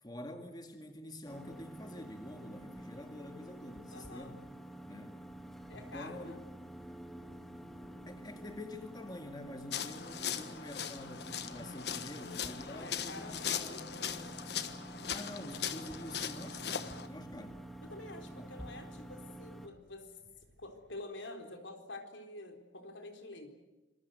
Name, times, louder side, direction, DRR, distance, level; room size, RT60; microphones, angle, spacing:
voice 1, 0.0-4.4 4.9-5.2 5.7-6.4 8.1-13.3 13.6-13.9 15.1-17.6 18.4-18.5, left 1 dB, 20° left, 5 dB, 2.0 m, -47 dB
sound 1, 1.3-19.7, right 1 dB, ahead, 1.7 m, -49 dB
voice 2, 3.9-4.4 5.7-6.4 12.7-14.4 17.8-20.1 20.6-23.6, left 2 dB, 80° left, 5 dB, 4.1 m, -48 dB
sound 2, 7.5-21.0, equal, 55° right, 6.6 m, -67 dB
sound 3, 9.7-17.1, left 8 dB, 60° left, 1.4 m, -39 dB
26.5 x 22.5 x 8.1 m, 1.1 s
head